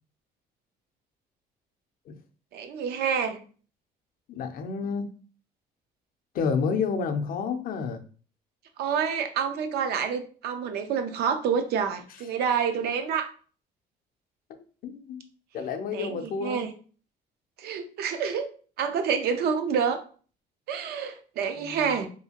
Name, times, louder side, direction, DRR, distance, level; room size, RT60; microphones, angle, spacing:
voice 1, 2.5-3.4 8.8-13.3 15.9-16.7 17.6-18.5 18.8-20.0 20.7-22.1, right 7 dB, 70° right, 7 dB, 0.5 m, -28 dB
voice 2, 4.3-5.1 6.3-8.0 14.8-15.2 15.5-16.6 21.6-22.0, left 5 dB, 60° left, 6 dB, 0.5 m, -30 dB
2.7 x 2.4 x 2.8 m, 0.40 s
cardioid pair, 110°, 17 cm